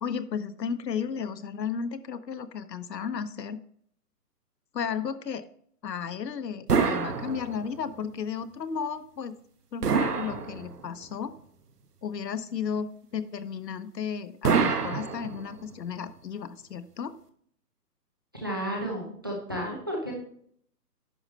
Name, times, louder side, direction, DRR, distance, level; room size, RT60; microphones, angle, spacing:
voice 1, 0.0-3.6 4.7-5.5 5.8-9.4 9.7-11.3 12.0-17.2, left 7 dB, 90° left, 12 dB, 1.0 m, -34 dB
sound 1, 6.7-7.9 9.8-11.1 14.4-15.7, right 5 dB, 70° right, 1.3 m, -27 dB
voice 2, 18.3-20.1, equal, 15° right, -2 dB, 0.8 m, -32 dB
10.5 x 6.6 x 3.2 m, 0.63 s
hypercardioid pair, 180°, 48 cm